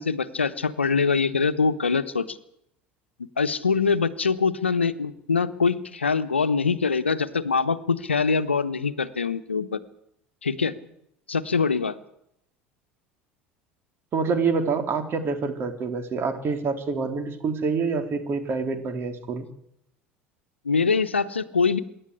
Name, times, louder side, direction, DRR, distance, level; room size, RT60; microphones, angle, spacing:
voice 1, 0.0-2.4 3.4-9.8 10.4-10.7 11.3-11.9 20.6-21.8, left 5 dB, 85° left, 12 dB, 1.0 m, -24 dB
voice 2, 14.1-19.5, right 5 dB, 40° right, 7 dB, 3.6 m, -26 dB
26.0 x 11.0 x 9.9 m, 0.75 s
figure-of-eight pair, 70°, 6 cm